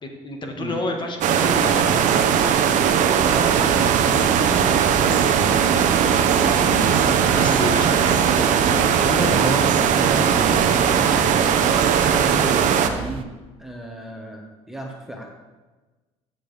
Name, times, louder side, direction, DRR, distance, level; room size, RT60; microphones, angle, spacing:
voice 1, 0.0-2.5 7.3-9.3, left 1 dB, 35° left, 3 dB, 1.7 m, -30 dB
sound 1, 1.2-12.9, right 8 dB, 60° right, 0.8 m, -19 dB
voice 2, 3.2-7.6 9.0-11.3 11.6-13.3 13.6-15.4, right 1 dB, 5° right, 1 dB, 1.3 m, -31 dB
sound 2, 3.2-13.2, right 9 dB, 40° right, 0.5 m, -33 dB
13.0 x 6.8 x 3.5 m, 1.2 s
supercardioid pair, 85°, 14 cm